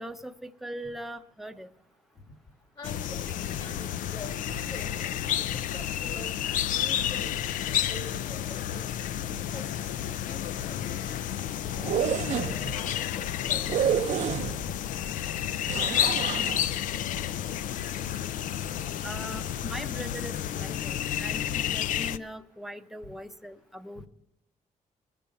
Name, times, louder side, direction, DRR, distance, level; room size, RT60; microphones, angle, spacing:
voice 1, 0.0-1.7 19.0-24.1, right 1 dB, ahead, 7 dB, 0.6 m, -40 dB
sound 1, 2.8-22.2, left 11 dB, 80° left, 0.4 m, -31 dB
voice 2, 2.8-5.0 5.3-7.3 7.6-8.9 9.2-9.7 10.3-11.0 12.7-13.7, left 2 dB, 40° left, 4 dB, 2.0 m, -45 dB
sound 2, 11.7-12.7 13.7-14.8 15.7-16.7, right 9 dB, 60° right, 0.5 m, -29 dB
20.0 x 6.9 x 5.6 m, 0.91 s
cardioid pair, 135°, 13 cm